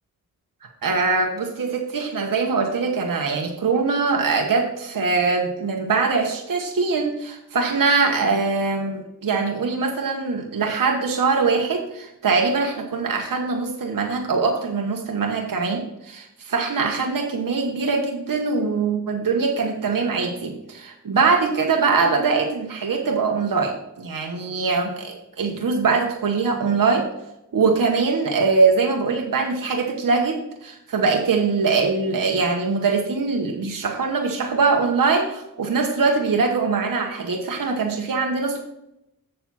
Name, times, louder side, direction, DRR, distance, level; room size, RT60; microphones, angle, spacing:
voice 1, 0.8-27.0 27.5-38.6, right 4 dB, 65° right, 2 dB, 1.2 m, -22 dB
7.5 x 6.8 x 4.2 m, 0.86 s
cardioid pair, 50°, 36 cm